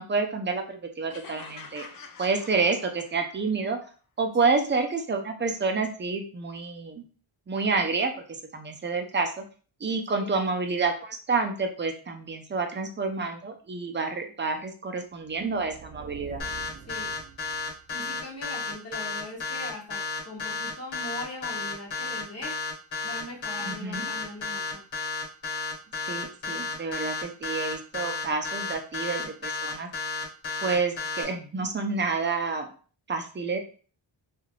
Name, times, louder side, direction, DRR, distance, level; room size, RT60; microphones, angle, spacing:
voice 1, 0.0-1.9 2.2-3.8 4.2-7.0 7.5-9.4 9.8-16.4 23.6-24.1 26.1-29.9 30.6-32.7 33.1-33.6, right 4 dB, 25° right, 5 dB, 0.5 m, -29 dB
sound 1, 1.1-3.4, left 5 dB, 50° left, 0.5 m, -46 dB
sound 2, 15.2-18.1, right 7 dB, 70° right, 0.6 m, -46 dB
sound 3, 16.4-31.2, left 4 dB, 80° left, 1.2 m, -32 dB
voice 2, 17.9-22.6 23.0-24.8, left 2 dB, 35° left, -2 dB, 0.9 m, -40 dB
3.2 x 2.4 x 2.4 m, 0.39 s
wide cardioid pair, 105°, 45 cm